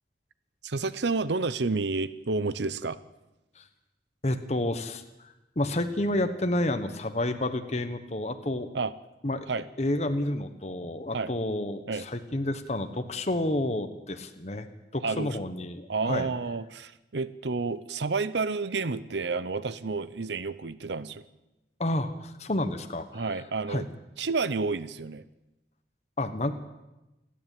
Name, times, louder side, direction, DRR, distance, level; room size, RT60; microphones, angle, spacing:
voice 1, 0.6-3.0 8.7-8.9 9.5-9.7 11.1-11.3 11.9-12.1 15.0-15.4 15.9-21.2 23.1-23.9 24.2-25.2, right 4 dB, 75° right, 15 dB, 0.7 m, -30 dB
voice 2, 4.2-8.7 9.2-9.5 9.8-14.7 14.9-16.3 21.8-23.2 23.7-23.8 26.2-26.5, left 1 dB, 35° left, 8 dB, 1.2 m, -30 dB
28.5 x 11.0 x 9.1 m, 0.99 s
head